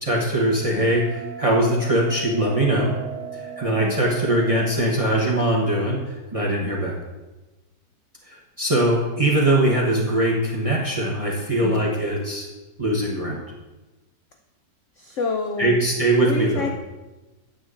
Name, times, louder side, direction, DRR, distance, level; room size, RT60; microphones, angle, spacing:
voice 1, 0.0-2.9 3.3-6.0 6.3-6.9 8.3-12.5 12.8-13.4 15.6-16.7, right 1 dB, 30° right, -3 dB, 0.7 m, -21 dB
Bell, 0.8-5.8, right 7 dB, 65° right, 1.4 m, -38 dB
voice 2, 11.6-11.9 15.0-15.8 16.2-16.7, left 5 dB, 80° left, 3 dB, 0.6 m, -28 dB
8.7 x 8.0 x 2.5 m, 1.1 s
omnidirectional pair, 1.9 m